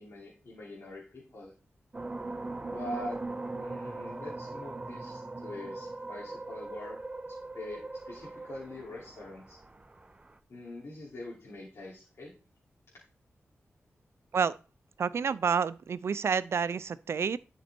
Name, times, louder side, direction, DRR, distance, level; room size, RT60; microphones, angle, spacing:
voice 1, 0.0-1.5 2.6-3.2 3.6-7.0 7.3-9.6 10.5-12.3, left 1 dB, 65° left, 3.0 m, -44 dB
sound 1, 1.9-10.4, right 2 dB, 25° right, 0.7 m, -40 dB
voice 2, 15.0-17.4, right 6 dB, 65° right, 0.4 m, -29 dB
11.0 x 5.2 x 4.4 m
wide cardioid pair, 115°, 5 cm